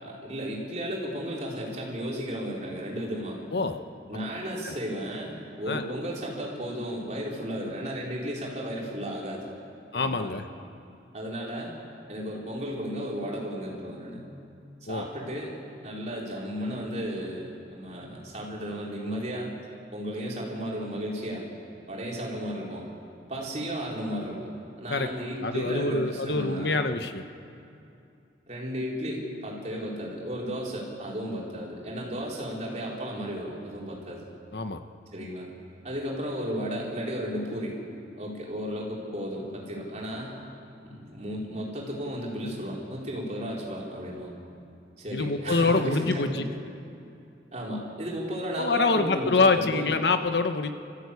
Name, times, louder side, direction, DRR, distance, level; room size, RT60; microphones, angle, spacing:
voice 1, 0.0-3.4 4.1-9.5 9.9-10.3 11.1-11.7 12.1-14.2 14.9-15.5 15.8-19.5 19.9-21.4 21.9-22.9 23.3-24.5 24.8-26.9 28.5-34.3 35.1-35.5 35.8-37.8 38.2-40.4 40.8-44.3 45.0-46.6 47.5-49.9, equal, 40° right, -3 dB, 4.3 m, -34 dB
voice 2, 9.9-10.4 14.9-15.0 24.9-25.1 25.4-27.2 34.5-34.8 45.1-46.3 48.6-50.7, left 3 dB, 70° left, 8 dB, 1.1 m, -25 dB
28.0 x 14.5 x 8.3 m, 2.6 s
head